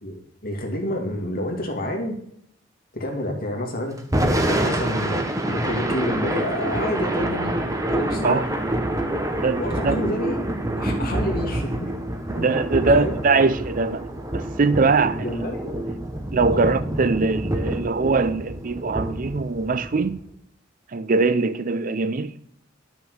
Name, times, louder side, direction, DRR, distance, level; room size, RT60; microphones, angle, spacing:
voice 1, 0.0-2.1 2.9-4.0 4.5-7.5 7.9-8.4 9.6-10.4 10.8-11.9 12.3-12.5 12.8-13.1 15.1-15.8 16.5-16.8 17.2-17.3, left 1 dB, 50° left, 2.4 m, -28 dB
Thunder / Rain, 4.0-20.2, right 1 dB, 15° right, 1.2 m, -27 dB
voice 2, 9.3-10.0 12.3-14.0 14.3-15.3 16.3-20.2 20.9-22.3, right 4 dB, 45° right, 0.5 m, -22 dB
11.0 x 6.2 x 6.4 m
head